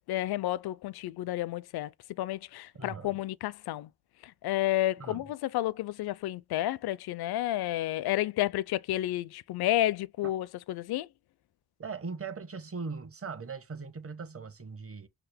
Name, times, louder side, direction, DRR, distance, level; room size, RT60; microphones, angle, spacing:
voice 1, 0.1-1.9 2.2-3.9 4.2-11.1, left 14 dB, 70° left, 0.5 m, -31 dB
voice 2, 2.7-3.2 5.0-5.3 10.2-10.3 11.8-15.1, right 4 dB, 35° right, 1.1 m, -40 dB
5.8 x 2.1 x 3.4 m
supercardioid pair, 50°, 40 cm